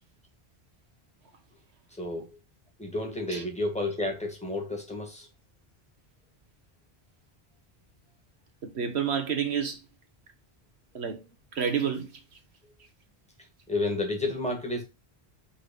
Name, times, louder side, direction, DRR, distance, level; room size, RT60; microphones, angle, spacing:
voice 1, 2.0-2.3 2.8-5.3 13.7-14.8, left 2 dB, 5° left, 1.9 m, -31 dB
voice 2, 8.6-9.8 10.9-11.2 11.5-12.1, right 7 dB, 85° right, 1.5 m, -29 dB
5.6 x 4.0 x 5.3 m
omnidirectional pair, 1.1 m